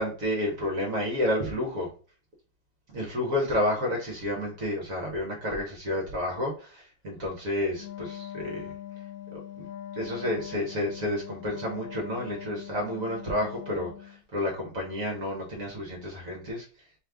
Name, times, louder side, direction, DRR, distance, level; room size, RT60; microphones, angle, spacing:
voice 1, 0.0-1.9 2.9-8.7 9.3-9.7 9.9-16.7, left 1 dB, 45° right, -1 dB, 1.4 m, -30 dB
Wind instrument woodwind instrument, 7.7-14.2, left 11 dB, 80° left, 1.5 m, -42 dB
3.4 x 3.3 x 3.6 m, 0.38 s
omnidirectional pair, 2.4 m